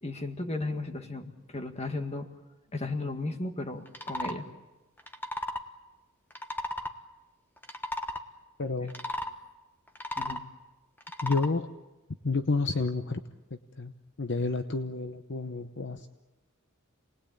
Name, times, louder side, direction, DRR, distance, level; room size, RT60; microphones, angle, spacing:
voice 1, 0.0-2.3 2.7-4.5 10.2-10.4, left 2 dB, 30° left, 6 dB, 1.8 m, -35 dB
sound 1, 3.9-4.4 5.0-5.7 6.3-6.9 7.6-8.2 8.9-9.3 9.9-10.5 11.0-11.5, left 1 dB, 10° left, 1.3 m, -34 dB
voice 2, 8.6-8.9 11.2-11.7 12.2-13.2 13.8-13.9 14.2-16.1, left 3 dB, 55° left, 8 dB, 0.9 m, -29 dB
28.0 x 20.0 x 8.8 m, 1.1 s
head